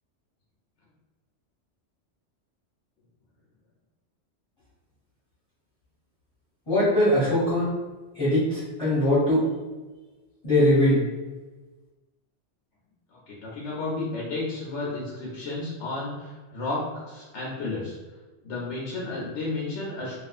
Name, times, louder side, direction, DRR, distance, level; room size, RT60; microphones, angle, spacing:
voice 1, 6.7-7.7 8.1-9.5 10.4-11.0, left 1 dB, 30° left, -13 dB, 1.1 m, -21 dB
voice 2, 13.3-18.0 18.4-20.2, left 2 dB, 80° left, -4 dB, 0.9 m, -32 dB
3.0 x 2.4 x 2.4 m, 1.2 s
omnidirectional pair, 1.2 m